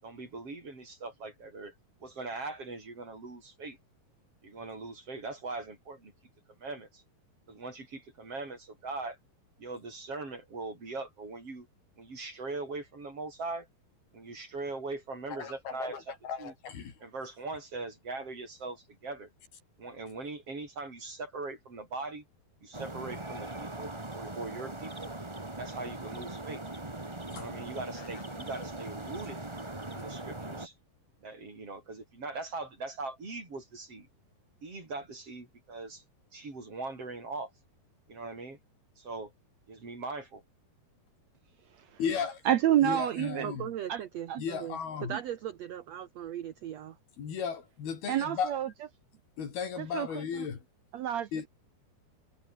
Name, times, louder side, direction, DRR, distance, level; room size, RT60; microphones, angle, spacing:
voice 1, 0.0-1.7 2.0-3.8 4.4-6.1 6.6-7.0 7.5-9.2 9.6-11.7 12.0-13.7 14.1-16.5 17.0-19.3 19.8-22.2 22.6-25.1 25.6-26.6 27.3-29.4 29.9-30.7 31.2-34.1 34.6-36.0 36.3-37.5 38.1-38.6 39.0-39.3 39.7-40.4, right 3 dB, 35° right, 7.1 m, -41 dB
voice 2, 15.3-16.9 27.3-27.4 42.0-42.4 42.8-43.7 44.4-45.1 47.2-48.6 49.4-50.6 51.3-51.5, left 7 dB, 70° left, 5.6 m, -35 dB
sound 1, 22.7-30.7, right 2 dB, 20° right, 0.8 m, -40 dB
voice 3, 42.4-43.5 43.9-44.0 44.3-44.4 45.1-45.2 48.1-48.7 49.8-50.5 50.9-51.3, right 11 dB, 85° right, 1.5 m, -28 dB
voice 4, 43.4-47.0, right 10 dB, 65° right, 1.7 m, -39 dB
omnidirectional pair, 4.6 m